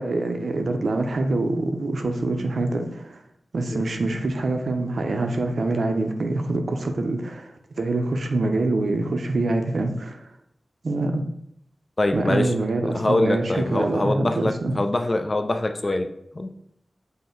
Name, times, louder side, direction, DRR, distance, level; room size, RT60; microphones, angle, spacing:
voice 1, 0.0-3.2 3.5-10.3 10.8-11.2 12.1-14.7, right 2 dB, 75° right, 5 dB, 0.5 m, -25 dB
voice 2, 12.0-12.5 12.9-16.5, left 2 dB, 35° left, 6 dB, 0.4 m, -24 dB
5.5 x 2.1 x 4.4 m, 0.72 s
wide cardioid pair, 85°, 0 cm